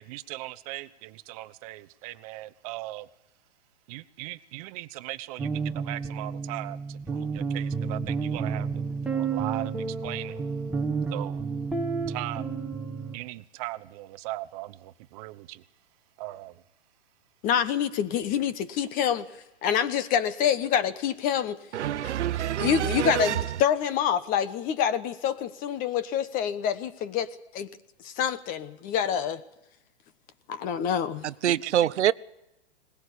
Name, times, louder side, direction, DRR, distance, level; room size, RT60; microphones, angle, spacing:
voice 1, 0.0-3.1 3.9-10.4 11.1-11.4 12.1-12.6 13.1-15.6 16.2-16.6 31.4-31.9, right 18 dB, 30° right, 0.9 m, -39 dB
sound 1, 5.4-13.2, right 5 dB, 5° right, 1.4 m, -31 dB
voice 2, 17.4-19.3 19.6-21.6 22.6-27.7 28.0-29.4 30.5-31.3, left 8 dB, 25° left, 1.1 m, -26 dB
voice 3, 21.7-23.3 31.4-32.1, right 11 dB, 85° right, 0.8 m, -25 dB
20.5 x 19.5 x 8.4 m
hypercardioid pair, 145°, 34 cm